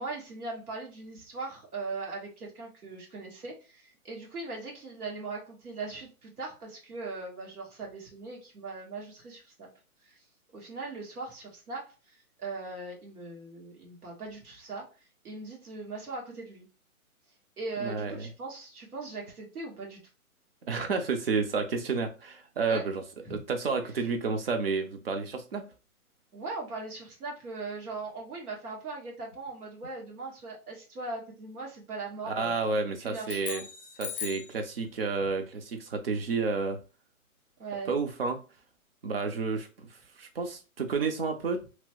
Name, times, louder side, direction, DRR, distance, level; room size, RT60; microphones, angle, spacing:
voice 1, 0.0-9.7 10.0-10.2 10.5-14.9 15.2-16.7 17.6-20.0 22.6-22.9 23.2-23.4 26.3-32.5 33.0-33.6 37.6-37.9, right 3 dB, 80° right, -1 dB, 1.6 m, -39 dB
voice 2, 17.8-18.3 20.7-23.0 23.3-25.7 32.3-33.6 34.0-36.8 37.9-38.4 39.0-41.8, right 4 dB, 45° right, 7 dB, 0.5 m, -31 dB
sound 1, 33.2-34.6, left 7 dB, 40° left, 0.4 m, -38 dB
2.9 x 2.2 x 2.9 m, 0.32 s
hypercardioid pair, 160°, 44 cm